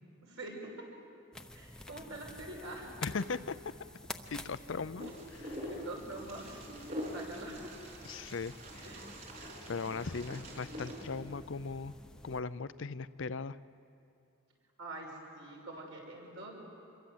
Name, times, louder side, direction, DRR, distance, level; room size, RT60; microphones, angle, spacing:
voice 1, 0.3-0.9 1.5-2.9 5.7-7.7 8.8-9.2 9.9-10.5 14.8-16.5, right 2 dB, 65° right, 0 dB, 6.0 m, -46 dB
sound 1, 1.3-12.4, left 1 dB, 5° left, 0.8 m, -50 dB
voice 2, 3.0-3.6 4.3-5.7 8.0-8.8 9.4-11.9 12.2-13.6, left 4 dB, 55° left, 15 dB, 0.5 m, -39 dB
Wind, 5.0-11.0, equal, 40° right, 4.9 m, -44 dB
27.0 x 22.5 x 8.0 m, 2.6 s
head